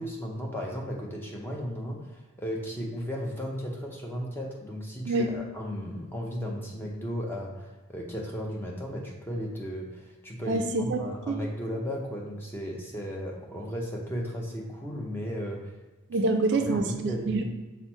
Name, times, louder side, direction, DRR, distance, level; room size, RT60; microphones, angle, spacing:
voice 1, 0.0-15.7 16.7-17.4, equal, 10° left, -1 dB, 0.5 m, -35 dB
voice 2, 10.5-11.0 11.3-11.4 16.1-17.4, right 2 dB, 50° right, 4 dB, 0.3 m, -26 dB
5.8 x 2.0 x 4.3 m, 1.2 s
head